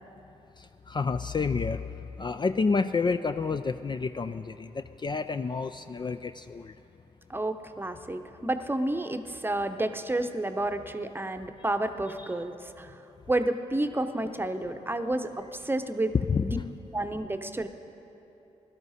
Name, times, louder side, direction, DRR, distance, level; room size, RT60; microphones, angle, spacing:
voice 1, 0.9-1.8 2.2-6.7 16.3-16.5, left 4 dB, 35° left, 10 dB, 0.4 m, -29 dB
voice 2, 7.3-12.9 13.3-16.6 16.9-17.7, right 1 dB, 15° right, 8 dB, 0.8 m, -30 dB
17.0 x 12.0 x 4.2 m, 3.0 s
supercardioid pair, 50°, 14 cm